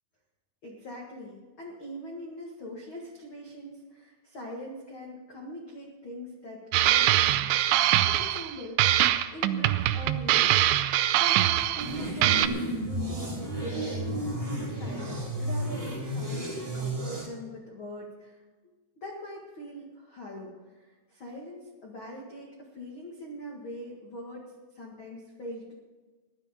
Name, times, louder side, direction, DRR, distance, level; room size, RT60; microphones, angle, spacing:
voice 1, 0.6-10.6 11.2-18.4 19.0-24.4 24.7-25.7, equal, 75° left, -2 dB, 1.1 m, -42 dB
sound 1, 6.7-8.5 8.8-12.0 12.2-12.5, right 13 dB, 85° right, 2.5 m, -23 dB
sound 2, 11.8-17.3, right 1 dB, 20° right, 1.7 m, -32 dB
15.0 x 11.5 x 5.2 m, 1.3 s
omnidirectional pair, 5.5 m